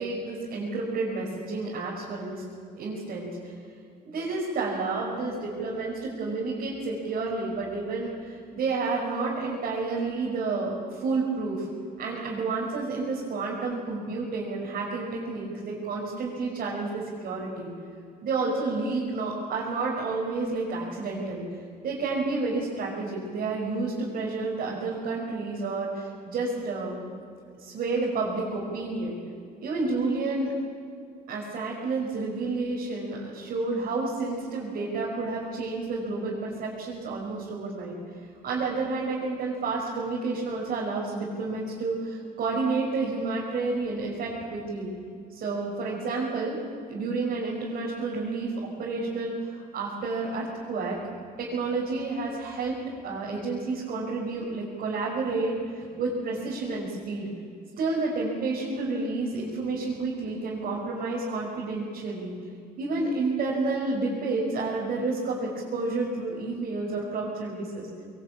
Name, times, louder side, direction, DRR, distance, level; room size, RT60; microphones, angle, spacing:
voice 1, 0.0-2.4 2.8-3.5 4.1-11.7 12.0-17.7 18.2-21.4 21.8-27.0 27.6-29.2 29.6-30.5 31.3-37.9 38.4-44.9 45.3-46.6 46.9-51.0 51.4-52.8 53.0-57.3 57.8-62.3 62.8-67.9, right 3 dB, 60° right, -5 dB, 5.7 m, -30 dB
22.0 x 19.0 x 8.9 m, 2.3 s
cardioid pair, 110°, 17 cm